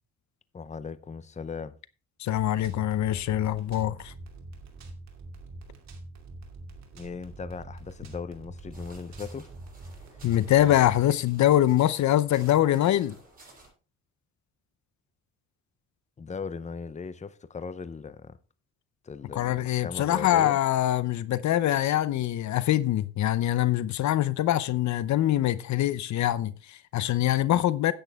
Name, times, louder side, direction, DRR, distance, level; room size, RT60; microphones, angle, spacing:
voice 1, 0.5-1.8 6.9-9.5 16.2-18.4 19.0-20.6, left 5 dB, 25° left, 0.7 m, -38 dB
voice 2, 2.2-4.1 10.2-13.1 19.3-27.9, left 13 dB, 70° left, 0.7 m, -24 dB
sound 1, 2.3-11.0, right 2 dB, 65° right, 2.6 m, -44 dB
sound 2, 8.7-13.7, right 2 dB, 30° right, 6.8 m, -54 dB
10.0 x 9.0 x 3.5 m
cardioid pair, 90°, 30 cm